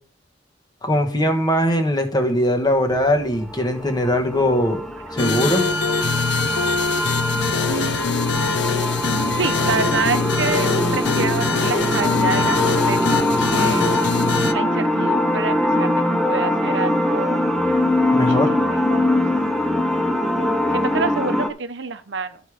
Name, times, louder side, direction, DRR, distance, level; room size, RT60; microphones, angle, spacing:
voice 1, 0.8-4.8 5.1-5.7 18.1-18.6, equal, 20° left, 6 dB, 1.4 m, -20 dB
sound 1, 2.9-21.5, left 1 dB, ahead, 0.8 m, -22 dB
sound 2, 5.2-14.5, left 4 dB, 65° left, 0.6 m, -23 dB
voice 2, 7.7-8.6 9.4-12.6 12.9-13.3 13.6-13.9 14.5-15.9 16.3-17.4 18.1-19.0 20.7-22.4, right 4 dB, 75° right, 11 dB, 0.7 m, -27 dB
12.0 x 5.2 x 5.0 m, 0.42 s
head